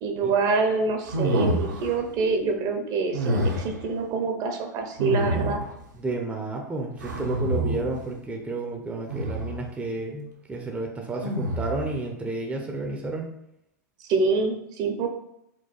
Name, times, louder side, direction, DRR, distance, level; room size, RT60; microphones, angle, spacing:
voice 1, 0.0-5.6 14.1-15.1, right 4 dB, 40° right, 4 dB, 0.8 m, -26 dB
sound 1, 1.1-2.0 3.1-3.8 5.0-5.8 7.0-8.0 9.1-9.6 11.2-11.9, right 1 dB, 85° right, 1.0 m, -27 dB
voice 2, 6.0-13.3, right 2 dB, 10° right, 1 dB, 0.7 m, -31 dB
4.5 x 2.2 x 4.3 m, 0.79 s
hypercardioid pair, 105°, 10 cm